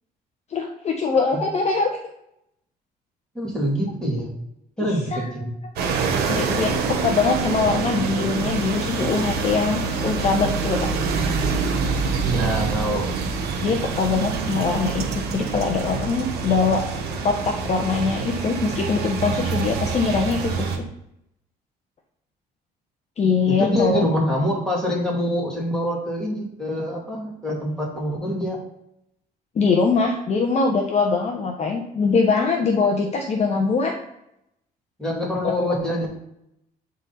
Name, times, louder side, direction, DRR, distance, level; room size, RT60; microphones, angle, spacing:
voice 1, 0.5-2.0 5.1-5.2 5.8-5.9 6.3-10.9 13.6-16.8 17.2-20.8 23.2-24.0 29.5-33.9 35.4-35.8, left 4 dB, 40° left, 2 dB, 0.9 m, -22 dB
voice 2, 3.3-4.3 4.8-5.5 12.2-13.1 23.5-28.6 35.0-36.1, equal, 5° left, -4 dB, 2.6 m, -25 dB
sound 1, 5.8-20.8, right 5 dB, 75° right, 1.2 m, -26 dB
8.0 x 3.8 x 4.2 m, 0.79 s
cardioid pair, 110°, 17 cm